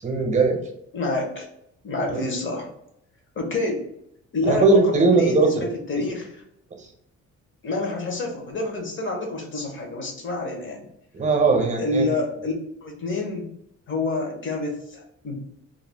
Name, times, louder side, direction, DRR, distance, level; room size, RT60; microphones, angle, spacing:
voice 1, 0.0-0.6 2.1-2.2 4.5-5.5 11.1-12.0, right 3 dB, 25° right, 3 dB, 0.8 m, -19 dB
voice 2, 0.9-1.5 1.8-2.7 3.3-3.8 4.3-6.4 7.6-10.9 11.8-12.5 12.8-13.5 13.9-15.4, left 2 dB, 40° left, 1 dB, 1.0 m, -28 dB
2.6 x 2.3 x 3.4 m, 0.76 s
cardioid pair, 90°, 30 cm